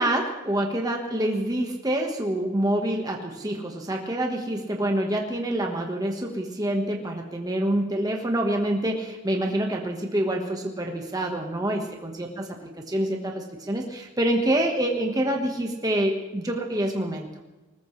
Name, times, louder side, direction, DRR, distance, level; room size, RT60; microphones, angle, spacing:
voice 1, 0.0-17.3, right 1 dB, 15° right, 1 dB, 1.4 m, -26 dB
20.0 x 20.0 x 3.3 m, 1.1 s
head